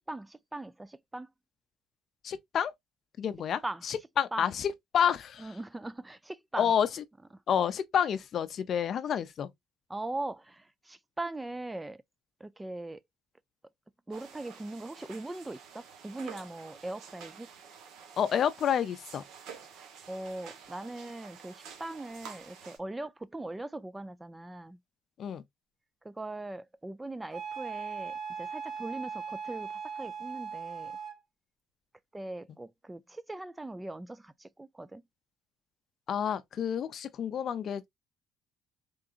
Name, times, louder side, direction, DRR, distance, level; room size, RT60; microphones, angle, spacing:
voice 1, 0.1-1.3 3.6-3.8 4.3-4.5 5.4-6.7 9.9-12.0 12.4-13.0 14.1-17.5 19.7-24.8 26.0-30.9 32.1-35.0, right 2 dB, 10° right, 0.3 m, -40 dB
voice 2, 2.2-2.7 3.2-5.6 6.6-7.0 7.5-9.5 18.2-19.2 25.2-25.4 36.1-37.9, left 8 dB, 50° left, 0.5 m, -29 dB
sound 1, 14.1-22.8, right 7 dB, 75° right, 1.2 m, -50 dB
Wind instrument woodwind instrument, 27.3-31.2, right 6 dB, 50° right, 2.4 m, -39 dB
3.8 x 3.6 x 2.4 m
cardioid pair, 110°, 0 cm